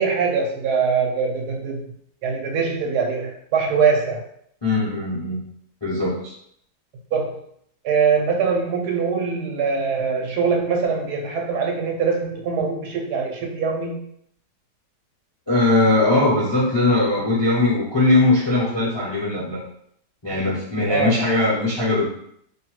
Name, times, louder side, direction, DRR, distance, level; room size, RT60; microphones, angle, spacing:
voice 1, 0.0-1.8 2.2-4.3 7.1-7.4 7.8-14.0 20.9-21.2, right 5 dB, 80° right, 1 dB, 1.1 m, -22 dB
voice 2, 4.6-5.4 5.8-6.3 15.5-19.6 20.2-22.1, left 2 dB, 30° left, -8 dB, 0.5 m, -20 dB
2.8 x 2.2 x 3.0 m, 0.69 s
omnidirectional pair, 1.7 m